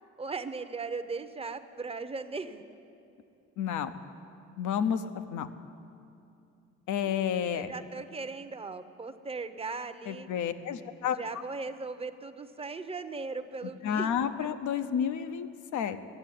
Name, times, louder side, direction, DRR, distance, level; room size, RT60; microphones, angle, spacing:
voice 1, 0.2-2.6 7.1-7.2 7.5-10.3 10.7-14.1, right 4 dB, 20° right, 10 dB, 0.7 m, -38 dB
voice 2, 3.6-3.9 4.6-5.0 5.3-5.5 6.9-7.7 10.1-11.2 13.8-15.5 15.7-16.0, left 8 dB, 75° left, 10 dB, 0.8 m, -30 dB
14.0 x 7.5 x 9.9 m, 2.6 s
cardioid pair, 90°, 30 cm